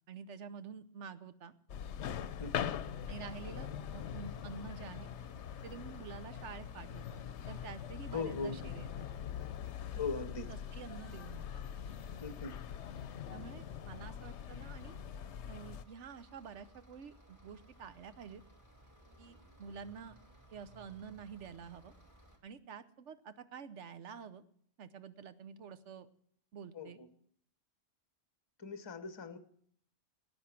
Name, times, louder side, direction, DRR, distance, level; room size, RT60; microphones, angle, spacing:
voice 1, 0.1-1.5 3.1-5.1 5.6-8.9 9.9-10.1 10.3-11.6 13.3-15.0 15.5-18.4 19.2-20.1 20.5-21.9 22.4-24.4 24.8-26.1 26.5-27.0, right 6 dB, 75° right, 12 dB, 1.1 m, -49 dB
sound 1, 1.7-15.8, left 9 dB, 70° left, 0.9 m, -43 dB
voice 2, 2.4-2.8 8.1-8.6 9.9-10.5 12.2-12.6 26.7-26.9 28.6-29.4, left 4 dB, 25° left, 9 dB, 0.8 m, -39 dB
sound 2, 4.2-22.4, equal, 15° right, 1.9 m, -61 dB
13.5 x 9.4 x 5.9 m, 0.64 s
omnidirectional pair, 1.2 m